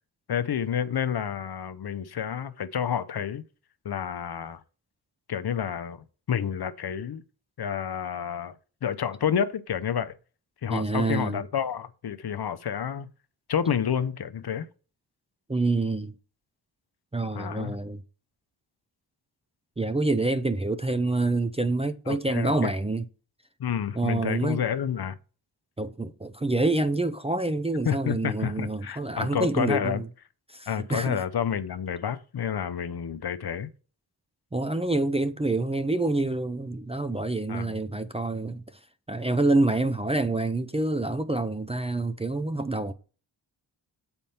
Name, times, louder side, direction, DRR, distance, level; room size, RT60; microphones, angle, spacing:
voice 1, 0.3-3.4 3.8-4.6 5.3-7.2 7.6-8.5 8.8-10.1 10.6-13.1 13.5-14.7 17.3-17.8 22.1-22.7 23.6-25.2 27.8-30.0 30.7-33.7 37.5-37.8, left 8 dB, 55° left, 0.7 m, -29 dB
voice 2, 10.7-11.4 15.5-16.1 17.1-18.0 19.8-23.0 23.9-24.6 25.8-30.1 30.5-31.2 34.5-38.8 39.1-42.9, right 2 dB, 15° right, 0.5 m, -27 dB
7.0 x 4.4 x 5.4 m
wide cardioid pair, 80°, 45 cm